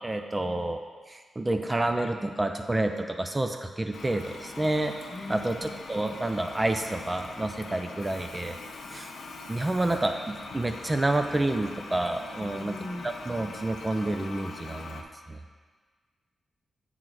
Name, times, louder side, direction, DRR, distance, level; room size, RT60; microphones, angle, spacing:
voice 1, 0.0-0.8 1.1-4.9 5.3-5.6 5.9-8.6 8.9-9.1 9.5-12.7 13.3-15.0 15.3-15.4, right 2 dB, 25° right, 5 dB, 0.5 m, -29 dB
Toilet flush, 3.9-15.0, left 3 dB, 75° left, 0.6 m, -42 dB
voice 2, 5.1-5.8 12.4-13.1, left 2 dB, 30° left, 4 dB, 0.6 m, -40 dB
7.5 x 3.9 x 4.7 m, 1.5 s
cardioid pair, 65°, 0 cm